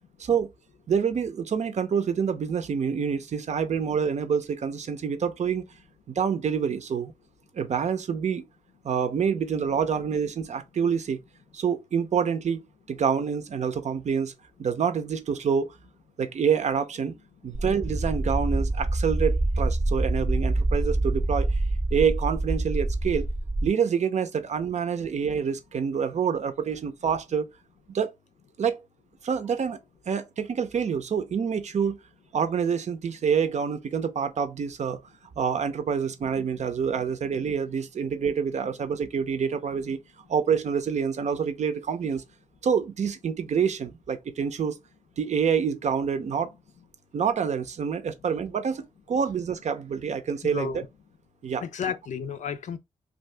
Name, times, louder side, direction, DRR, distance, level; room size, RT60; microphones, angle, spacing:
voice 1, 0.2-0.5 0.9-5.6 6.1-7.1 7.5-8.4 8.8-11.2 11.5-12.6 12.9-14.3 14.6-15.7 16.2-17.1 17.4-21.5 21.9-23.3 23.6-27.5 27.9-28.1 28.6-28.8 29.2-29.8 30.1-32.0 32.3-35.0 35.4-40.0 40.3-42.2 42.6-44.8 45.2-46.5 47.1-50.8 51.4-51.6, right 7 dB, 65° right, 0.6 m, -27 dB
sound 1, 17.5-23.7, right 2 dB, 20° right, 0.5 m, -26 dB
voice 2, 50.4-50.9 51.6-52.8, left 7 dB, 80° left, 0.4 m, -32 dB
2.7 x 2.5 x 3.3 m
cardioid pair, 60°, 13 cm